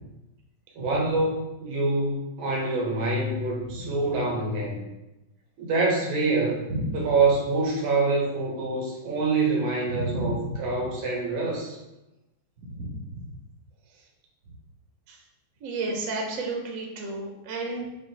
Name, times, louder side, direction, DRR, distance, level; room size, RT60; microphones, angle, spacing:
voice 1, 0.8-4.8 5.6-6.7 6.9-11.8, right 3 dB, 85° right, -3 dB, 1.7 m, -26 dB
voice 2, 9.8-10.5 12.7-13.0 15.1-15.2 15.6-17.9, right 2 dB, 60° right, 0 dB, 0.9 m, -31 dB
5.7 x 2.3 x 2.7 m, 0.97 s
omnidirectional pair, 2.1 m